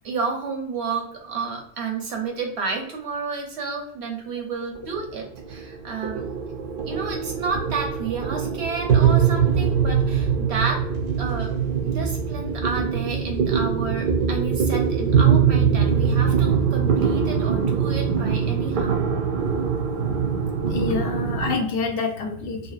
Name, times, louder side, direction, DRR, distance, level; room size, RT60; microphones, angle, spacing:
voice 1, 0.0-6.3 6.8-10.8 11.2-11.5 11.8-19.1, right 4 dB, 80° right, 1 dB, 1.1 m, -31 dB
sound 1, 4.7-21.6, right 7 dB, 55° right, 0.6 m, -22 dB
voice 2, 20.6-22.7, left 3 dB, 65° left, 3 dB, 0.7 m, -27 dB
2.8 x 2.6 x 2.4 m, 0.64 s
omnidirectional pair, 1.1 m